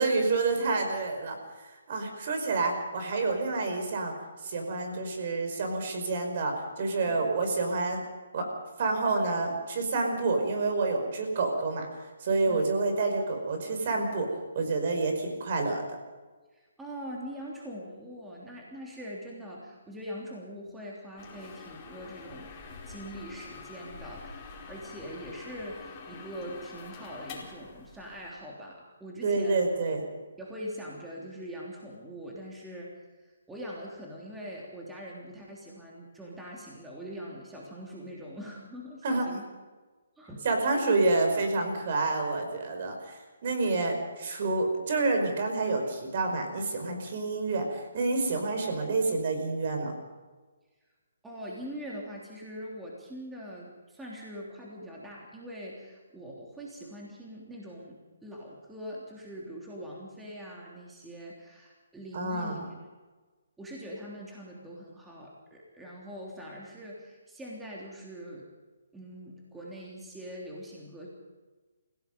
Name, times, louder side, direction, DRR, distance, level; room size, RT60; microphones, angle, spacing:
voice 1, 0.0-1.4 1.9-4.1 4.4-8.0 8.3-8.5 8.8-11.9 12.2-14.3 14.6-15.8 29.2-30.0 39.0-39.3 40.4-49.9 62.1-62.7, right 3 dB, 50° right, 4 dB, 5.3 m, -28 dB
voice 2, 16.5-22.6 22.8-29.7 30.4-39.4 40.2-40.5 48.3-48.4 51.2-62.6 63.6-68.5 68.9-71.1, equal, 5° right, -4 dB, 3.3 m, -43 dB
sound 1, 21.2-28.3, left 5 dB, 25° left, 4.6 m, -46 dB
29.0 x 16.5 x 5.4 m, 1.3 s
hypercardioid pair, 155°, 0 cm